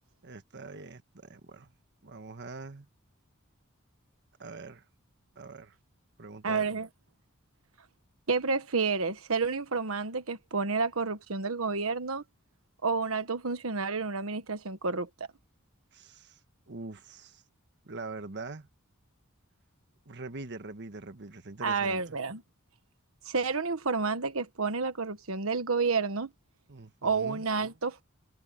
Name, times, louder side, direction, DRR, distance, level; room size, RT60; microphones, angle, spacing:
voice 1, 0.2-1.7 2.0-2.9 4.4-4.8 5.4-5.7 6.2-6.8 15.9-16.4 16.7-17.4 17.8-18.7 20.0-22.0 26.7-27.4, right 3 dB, 55° right, 1.4 m, -43 dB
voice 2, 6.4-6.9 8.3-12.2 12.8-15.1 21.6-22.4 23.2-26.3 27.0-28.0, right 4 dB, 80° right, 1.3 m, -30 dB
head